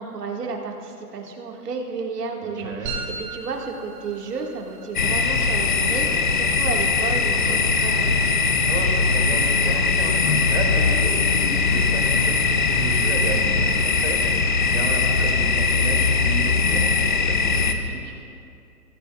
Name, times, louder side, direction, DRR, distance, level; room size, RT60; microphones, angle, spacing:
voice 1, 0.0-8.2, right 4 dB, 75° right, 0 dB, 2.0 m, -32 dB
voice 2, 2.4-3.0 8.7-18.1, right 4 dB, 50° right, 1 dB, 2.5 m, -33 dB
sound 1, 2.8-17.5, right 3 dB, 35° right, 2.7 m, -43 dB
sound 2, 4.9-17.7, left 4 dB, 35° left, 0.5 m, -20 dB
sound 3, 5.0-5.5 6.3-6.7 7.1-7.2 7.5-7.8 8.1-8.4 8.7-9.1 9.8-10.4 11.0-11.2 12.3-12.7 13.3-13.4 13.6-14.6 15.0-15.4, left 3 dB, 65° left, 1.7 m, -38 dB
16.5 x 15.0 x 2.4 m, 2.5 s
hypercardioid pair, 155°, 48 cm